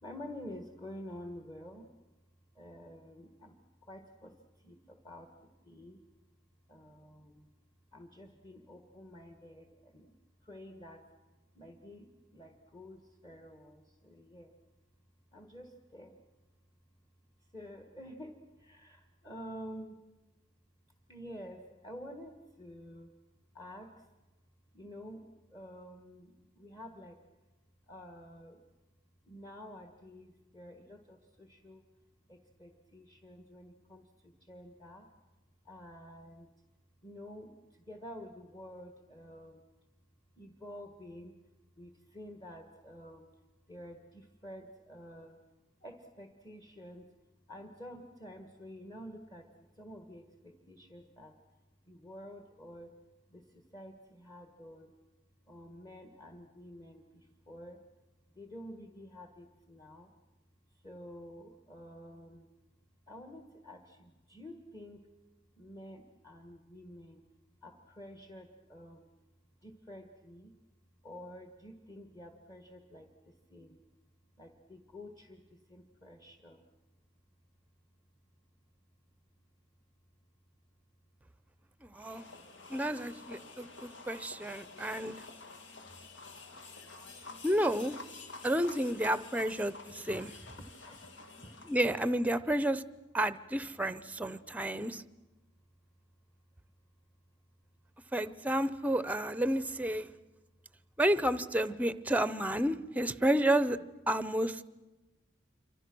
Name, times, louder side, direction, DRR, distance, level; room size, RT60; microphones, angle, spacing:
voice 1, 0.0-1.9 2.5-6.0 6.7-7.5 7.9-10.1 10.4-11.0 11.5-14.5 15.3-16.2 17.5-20.0 21.1-23.1 23.5-24.0 24.7-27.2 27.9-28.6 29.2-31.8 32.3-35.1 35.6-36.5 37.0-39.6 40.4-41.4 41.8-43.3 43.7-45.4 45.8-47.1 47.5-49.5 49.8-51.3 51.9-52.9 53.3-54.9 55.5-57.8 58.3-60.1 60.8-62.5 63.1-65.1 65.6-67.2 67.6-69.1 69.6-70.5 71.0-73.8 74.4-76.6 85.8-86.1 90.0-90.2 90.6-91.1 91.4-91.6 94.0-94.1, equal, 25° left, 5 dB, 1.6 m, -50 dB
voice 2, 81.8-82.3 82.7-85.1 87.4-88.0 88.4-90.3 91.7-92.8 93.1-95.0 98.1-100.1 101.0-103.8 104.1-104.6, right 1 dB, 10° right, 15 dB, 0.7 m, -31 dB
sound 1, 82.0-92.1, left 3 dB, 80° left, 2.0 m, -50 dB
27.5 x 25.0 x 6.2 m, 1.1 s
head